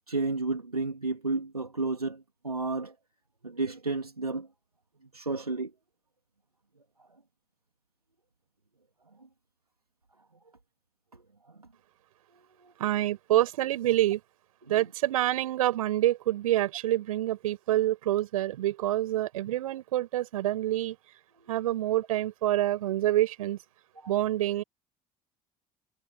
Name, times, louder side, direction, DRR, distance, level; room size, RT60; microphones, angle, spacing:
voice 1, 0.1-2.9 3.4-4.5 5.1-5.7 11.1-11.2 12.6-12.7 14.6-14.8 24.0-24.1, right 3 dB, 85° right, 3.0 m, -32 dB
voice 2, 12.8-14.2 14.7-21.0 21.5-23.6 24.1-24.6, right 14 dB, 70° right, 5.8 m, -27 dB
figure-of-eight pair, 55°, 19 cm